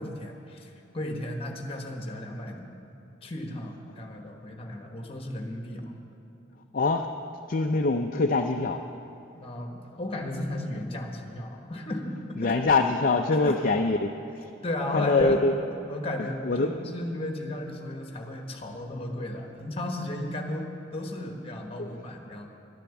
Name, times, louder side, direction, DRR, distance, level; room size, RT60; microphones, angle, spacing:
voice 1, 0.0-2.7 3.2-5.9 9.3-12.6 13.4-13.7 14.6-15.4 15.9-22.5, left 1 dB, 30° left, 3 dB, 1.2 m, -34 dB
voice 2, 6.7-7.1 7.5-8.8 12.4-14.5 14.9-15.5 16.4-16.7 21.8-22.0, left 3 dB, 45° left, 4 dB, 0.4 m, -24 dB
11.5 x 10.5 x 7.1 m, 2.9 s
head